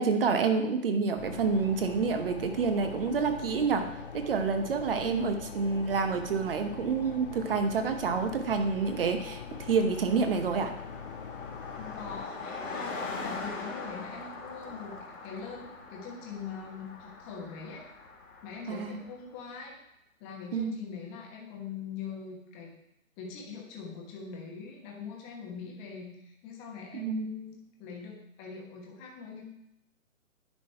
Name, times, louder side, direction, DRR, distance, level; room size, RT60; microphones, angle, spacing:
voice 1, 0.0-3.8 4.1-10.7 18.7-19.0 20.5-20.8 26.9-27.3, right 5 dB, 45° right, 7 dB, 1.0 m, -28 dB
sound 1, 1.2-12.2, left 6 dB, 40° left, 0.5 m, -42 dB
Car passing by, 7.8-7.9 8.1-19.1, left 3 dB, 70° left, 2.1 m, -42 dB
voice 2, 11.7-14.9 15.2-17.8 18.4-19.7 20.2-22.7 23.2-29.4, left 5 dB, 15° left, 0 dB, 1.1 m, -42 dB
10.5 x 3.9 x 4.4 m, 0.80 s
figure-of-eight pair, 145°, 41 cm